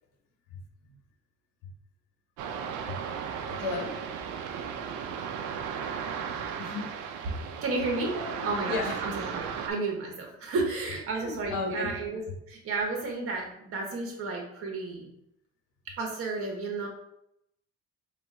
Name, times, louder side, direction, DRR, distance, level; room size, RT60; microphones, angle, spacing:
sound 1, 2.4-9.7, right 7 dB, 80° right, 0.6 m, -36 dB
voice 1, 3.5-3.9 6.6-6.9 8.0-9.0 11.1-12.0, left 3 dB, 90° left, 2 dB, 1.1 m, -34 dB
voice 2, 7.6-8.1 8.4-15.1 15.9-16.9, right 3 dB, 50° right, 1 dB, 1.3 m, -32 dB
4.8 x 2.5 x 3.8 m, 0.79 s
cardioid pair, 145°, 30 cm